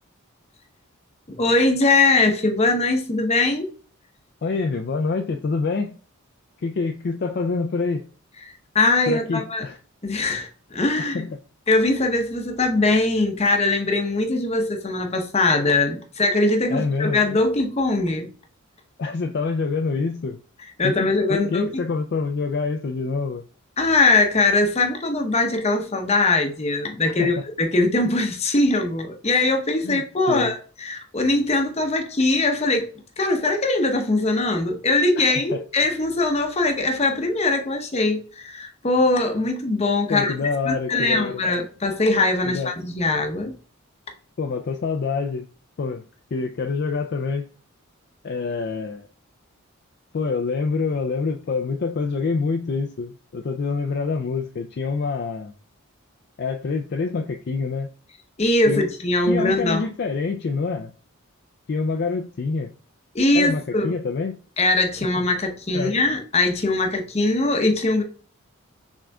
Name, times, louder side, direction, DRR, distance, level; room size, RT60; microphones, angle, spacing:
voice 1, 1.3-3.7 8.7-9.6 10.0-11.2 11.7-18.3 20.8-21.8 23.8-32.9 33.2-43.6 58.4-59.9 63.1-63.9 64.6-68.0, left 2 dB, 30° left, 0.7 m, -21 dB
voice 2, 4.4-6.0 6.6-8.1 9.1-9.8 11.0-11.4 16.7-17.2 19.0-20.4 20.8-23.4 27.1-27.4 29.8-30.5 35.2-35.6 40.1-41.4 42.4-42.7 44.4-45.5 45.8-46.1 46.3-47.5 48.2-49.1 50.1-55.5 56.4-57.9 58.6-58.9 59.3-60.9 61.7-62.7 63.3-64.4 65.7-65.9, left 4 dB, 50° left, 0.4 m, -26 dB
6.1 x 3.6 x 2.2 m
head